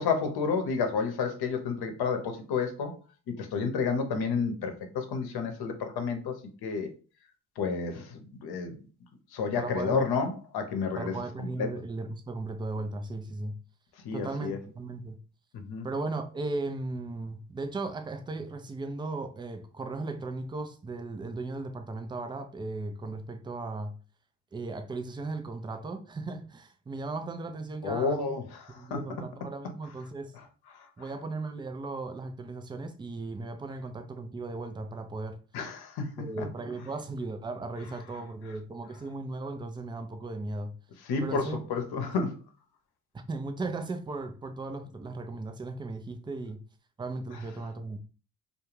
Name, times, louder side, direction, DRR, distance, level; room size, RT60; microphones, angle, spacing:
voice 1, 0.0-2.9 3.4-6.3 6.6-6.9 7.6-8.8 9.3-11.1 11.6-11.7 14.0-14.6 15.5-15.9 27.8-28.4 28.9-29.0 35.5-36.5 41.1-42.3, left 5 dB, 55° left, 0.8 m, -30 dB
voice 2, 9.6-10.0 11.0-13.5 14.1-15.2 15.8-23.9 24.5-28.4 28.7-30.3 31.0-35.4 36.2-40.7 41.2-41.6 42.0-42.1 43.3-46.6 47.0-48.0, right 3 dB, 10° right, 0.3 m, -36 dB
2.3 x 2.3 x 3.1 m
hypercardioid pair, 55°, 45 cm